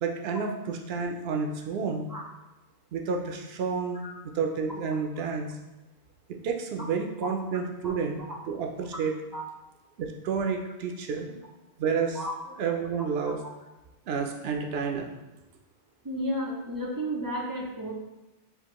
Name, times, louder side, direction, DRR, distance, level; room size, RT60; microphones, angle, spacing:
voice 1, 0.0-2.1 2.9-4.0 4.3-5.6 6.3-9.2 10.0-11.4 11.8-12.2 12.6-13.4 14.1-15.1, right 5 dB, 70° right, 3 dB, 0.8 m, -30 dB
voice 2, 16.0-17.9, equal, 35° right, -3 dB, 0.3 m, -32 dB
6.7 x 2.5 x 3.0 m, 1.0 s
omnidirectional pair, 1.1 m